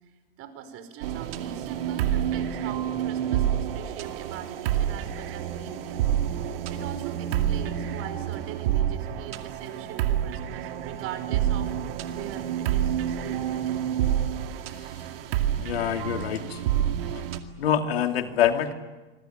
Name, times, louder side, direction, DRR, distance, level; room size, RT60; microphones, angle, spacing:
voice 1, 0.0-11.7 12.1-13.8, right 9 dB, 50° right, 10 dB, 4.9 m, -42 dB
sound 1, 1.0-17.4, right 10 dB, 70° right, 2.3 m, -28 dB
voice 2, 15.6-16.6 17.6-18.7, left 9 dB, 80° left, 7 dB, 2.5 m, -25 dB
26.5 x 22.0 x 10.0 m, 1.2 s
hypercardioid pair, 95°, 30 cm